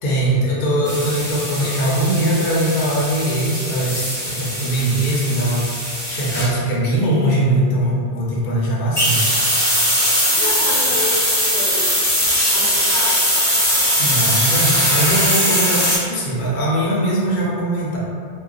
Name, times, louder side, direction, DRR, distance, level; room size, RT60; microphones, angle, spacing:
voice 1, 0.0-5.7 6.1-9.3 14.0-18.0, right 1 dB, 60° left, -5 dB, 0.6 m, -20 dB
sound 1, 0.9-6.5 8.9-16.0, equal, 5° left, 0.7 m, -20 dB
voice 2, 10.3-12.0 12.5-13.2, left 3 dB, 85° left, -6 dB, 0.9 m, -29 dB
2.3 x 2.2 x 2.4 m, 2.1 s
omnidirectional pair, 1.1 m